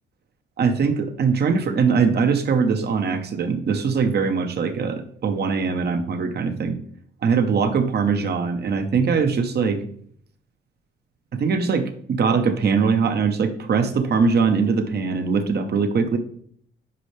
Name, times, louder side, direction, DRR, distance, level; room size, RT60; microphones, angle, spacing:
voice 1, 0.6-6.8 7.2-9.8 11.3-16.2, right 5 dB, 55° right, 7 dB, 1.1 m, -21 dB
9.8 x 5.5 x 3.4 m, 0.62 s
cardioid pair, 90°, 20 cm